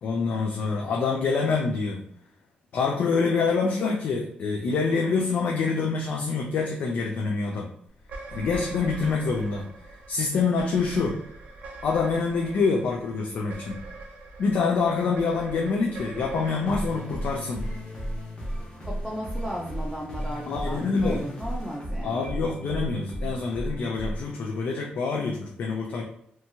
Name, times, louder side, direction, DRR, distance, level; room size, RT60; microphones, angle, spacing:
voice 1, 0.0-2.0 2.7-7.7 8.3-9.7 10.1-11.2 11.8-13.8 14.4-17.6 20.5-21.2 22.0-26.0, left 4 dB, 70° left, 1 dB, 0.4 m, -26 dB
sound 1, 8.0-18.5, right 2 dB, 75° right, 0.6 m, -42 dB
sound 2, 16.6-24.3, equal, 35° left, 0.9 m, -34 dB
voice 2, 18.8-22.4, equal, ahead, -3 dB, 0.4 m, -35 dB
2.8 x 2.3 x 2.7 m, 0.69 s
wide cardioid pair, 130°, 3 cm